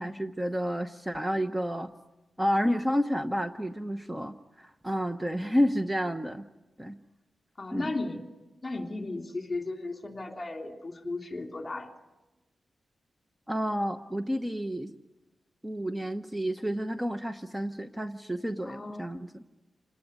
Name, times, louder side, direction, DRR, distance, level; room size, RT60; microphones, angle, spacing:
voice 1, 0.0-1.9 2.4-6.4 6.8-7.0 7.7-7.9 13.5-14.9 15.6-19.5, equal, 10° right, 7 dB, 0.9 m, -30 dB
voice 2, 7.6-8.2 8.6-11.9 18.6-19.0, left 2 dB, 30° left, 4 dB, 3.1 m, -36 dB
27.5 x 19.5 x 9.7 m, 1.1 s
wide cardioid pair, 100°, 0 cm